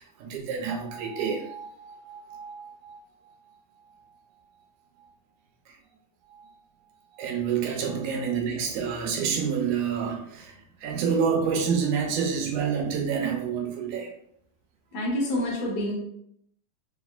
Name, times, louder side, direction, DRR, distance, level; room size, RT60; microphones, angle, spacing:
voice 1, 0.0-3.0 6.3-6.5 7.2-14.1, right 6 dB, 85° right, 1 dB, 2.2 m, -28 dB
voice 2, 14.9-15.9, left 1 dB, 70° left, -2 dB, 1.8 m, -28 dB
5.0 x 2.4 x 2.3 m, 0.70 s
omnidirectional pair, 3.4 m